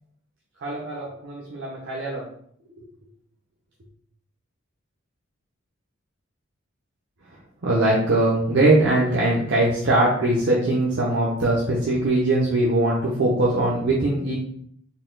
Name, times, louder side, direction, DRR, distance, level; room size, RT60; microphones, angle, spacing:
voice 1, 0.6-2.3 2.8-2.9 7.6-14.3, right 2 dB, 60° right, -5 dB, 0.7 m, -21 dB
4.1 x 3.8 x 2.2 m, 0.67 s
head